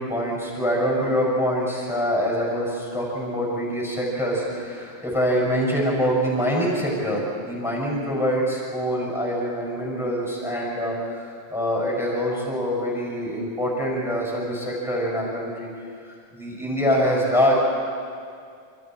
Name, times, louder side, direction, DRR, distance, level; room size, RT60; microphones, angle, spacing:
voice 1, 0.0-15.7 16.1-17.5, equal, ahead, -3 dB, 6.6 m, -25 dB
28.5 x 28.0 x 4.6 m, 2.3 s
omnidirectional pair, 1.4 m